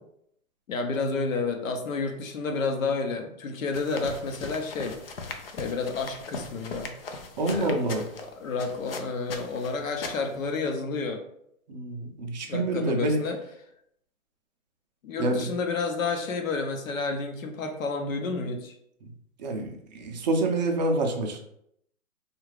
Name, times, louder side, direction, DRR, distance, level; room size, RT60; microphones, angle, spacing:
voice 1, 0.7-5.0 5.5-6.9 7.5-7.8 8.4-11.2 12.5-13.4 15.0-18.7, left 4 dB, 65° left, 4 dB, 0.8 m, -30 dB
sound 1, 3.7-10.5, left 4 dB, 45° left, 0.4 m, -40 dB
voice 2, 7.4-8.0 11.7-13.2 15.2-15.4 19.4-21.4, right 2 dB, 30° right, 2 dB, 0.5 m, -27 dB
3.6 x 2.4 x 3.2 m, 0.73 s
hypercardioid pair, 135°, 43 cm